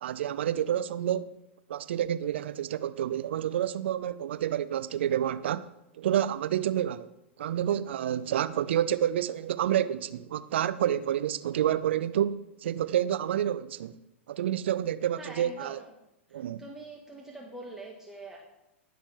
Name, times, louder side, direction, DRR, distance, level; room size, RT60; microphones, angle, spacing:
voice 1, 0.0-1.3 1.7-5.7 6.0-7.1 7.4-14.0 14.3-15.8 16.3-16.6, right 10 dB, 60° right, 0.5 m, -29 dB
voice 2, 15.2-15.9 16.3-18.4, right 2 dB, 5° right, 1.6 m, -44 dB
16.5 x 6.4 x 3.4 m
figure-of-eight pair, 100°, 7 cm